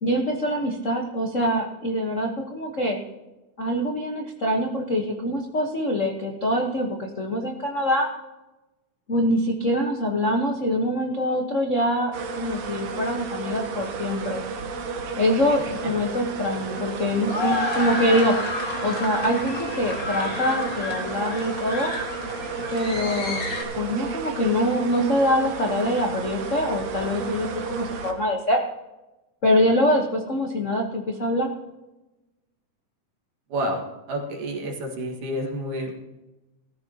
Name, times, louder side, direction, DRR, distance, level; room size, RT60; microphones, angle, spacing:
voice 1, 0.0-3.0 3.6-8.1 9.1-14.4 15.2-18.4 18.8-21.9 22.7-23.4 23.8-28.6 29.4-31.5, equal, 70° left, 1 dB, 0.7 m, -24 dB
sound 1, 12.1-28.1, right 4 dB, 65° right, 2.3 m, -33 dB
sound 2, 15.7-23.6, left 1 dB, 30° left, 2.1 m, -31 dB
voice 2, 33.5-33.8 34.1-35.9, right 1 dB, 85° right, 0 dB, 3.4 m, -29 dB
17.5 x 14.0 x 2.9 m, 1.0 s
omnidirectional pair, 3.5 m